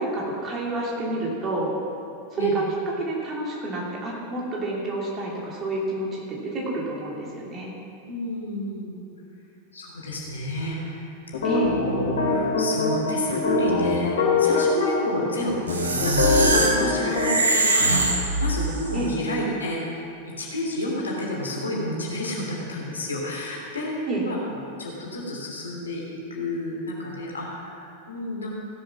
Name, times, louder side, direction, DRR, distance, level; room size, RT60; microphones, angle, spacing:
voice 1, 0.0-1.7 2.3-2.7 3.0-7.7 11.4-11.8 18.9-19.1 24.0-24.3, right 2 dB, 30° right, -3 dB, 2.9 m, -29 dB
voice 2, 8.1-9.1 9.7-11.5 11.7-20.0 20.4-26.0 26.3-28.5, left 1 dB, 75° left, -3 dB, 3.0 m, -30 dB
sound 1, 11.3-14.9 15.2-15.3 15.7-17.3, left 4 dB, 60° left, 2.5 m, -23 dB
sound 2, 15.7-18.9, right 2 dB, 75° right, 1.5 m, -22 dB
16.0 x 7.7 x 6.1 m, 2.6 s
figure-of-eight pair, 90°, 0 cm